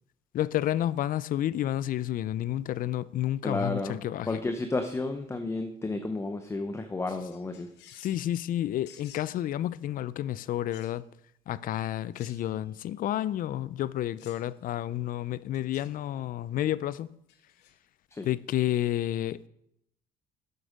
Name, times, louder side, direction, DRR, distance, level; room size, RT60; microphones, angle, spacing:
voice 1, 0.3-4.4 7.9-11.1 11.5-17.1 18.2-19.5, left 12 dB, 55° left, 0.4 m, -30 dB
voice 2, 3.4-4.0 4.3-7.7 18.1-18.3, left 2 dB, 15° left, 0.7 m, -32 dB
sound 1, 7.3-8.3 8.8-9.4 10.7-11.0 12.1-12.7 14.2-14.5 15.5-16.0 17.3-17.7, left 9 dB, 85° left, 1.1 m, -54 dB
7.9 x 7.8 x 5.1 m
cardioid pair, 110°, 17 cm